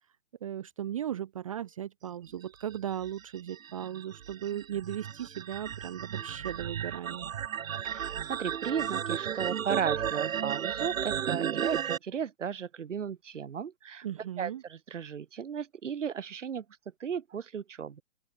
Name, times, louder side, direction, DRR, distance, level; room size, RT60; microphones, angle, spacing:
voice 1, 0.4-7.3 14.0-14.6, right 10 dB, 25° right, 0.6 m, -37 dB
sound 1, 2.7-12.0, right 9 dB, 85° right, 0.8 m, -34 dB
voice 2, 7.8-16.6 17.0-18.0, right 7 dB, 65° right, 4.3 m, -35 dB
open air
hypercardioid pair, 145°, 39 cm